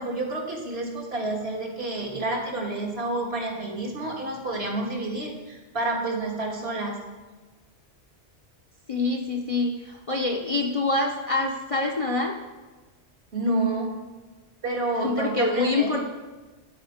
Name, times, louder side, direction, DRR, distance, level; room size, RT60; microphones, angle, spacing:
voice 1, 0.0-7.0 13.3-13.9 14.6-16.0, right 2 dB, 60° right, -1 dB, 1.8 m, -29 dB
voice 2, 8.9-12.4 15.0-16.0, left 3 dB, 35° left, 1 dB, 0.6 m, -25 dB
12.5 x 4.4 x 5.0 m, 1.2 s
omnidirectional pair, 1.2 m